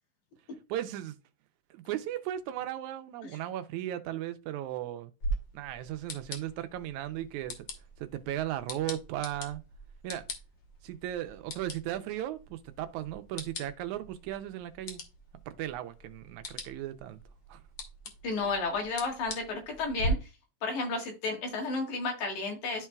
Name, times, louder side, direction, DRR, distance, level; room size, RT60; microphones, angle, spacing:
voice 1, 0.7-1.2 1.7-5.1 5.5-7.7 8.0-9.6 10.0-10.2 10.8-15.0 15.5-17.2 17.5-17.6, right 12 dB, 80° right, 2.1 m, -36 dB
sound 1, 5.2-20.1, equal, 55° left, 1.4 m, -42 dB
voice 2, 18.2-20.2 20.6-22.9, left 3 dB, 80° left, 3.1 m, -32 dB
12.0 x 4.3 x 2.3 m
omnidirectional pair, 3.4 m